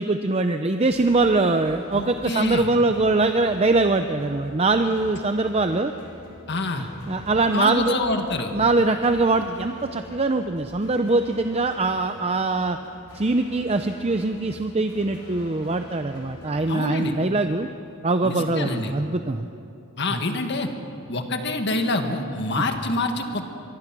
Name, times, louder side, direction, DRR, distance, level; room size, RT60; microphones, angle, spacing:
voice 1, 0.0-5.9 6.8-8.0 8.5-12.8 13.1-17.7 18.0-19.5 20.1-20.2 22.6-22.7, right 3 dB, 30° right, 7 dB, 0.6 m, -22 dB
sound 1, 0.9-17.9, equal, 80° left, 4.4 m, -45 dB
voice 2, 1.9-2.7 6.5-6.9 7.5-8.5 16.7-17.1 18.2-18.9 20.0-20.7 21.1-23.4, left 2 dB, 50° left, 5 dB, 1.8 m, -26 dB
24.5 x 23.0 x 6.1 m, 2.8 s
head